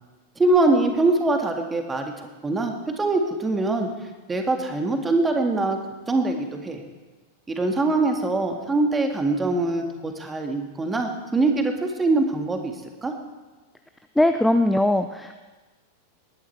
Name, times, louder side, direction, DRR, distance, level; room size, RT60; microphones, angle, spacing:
voice 1, 0.4-3.9 4.3-5.8 6.1-6.8 7.5-12.7 13.0-13.1, right 2 dB, 15° right, 4 dB, 1.9 m, -23 dB
voice 2, 14.2-15.4, left 1 dB, 5° left, 8 dB, 0.6 m, -20 dB
20.0 x 11.0 x 4.5 m, 1.3 s
figure-of-eight pair, 90°, 0 cm